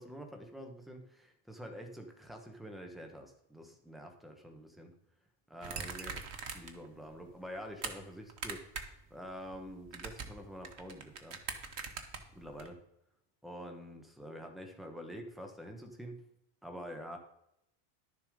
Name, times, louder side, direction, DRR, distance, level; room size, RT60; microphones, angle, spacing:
voice 1, 0.0-4.9 5.5-6.1 6.5-11.4 12.3-12.8 13.4-16.2 16.6-17.2, equal, ahead, 3 dB, 1.4 m, -47 dB
sound 1, 5.6-6.9 7.2-7.9 8.3-9.0 9.3-12.7, right 5 dB, 85° right, 1.4 m, -42 dB
11.5 x 6.9 x 5.2 m, 0.81 s
omnidirectional pair, 1.1 m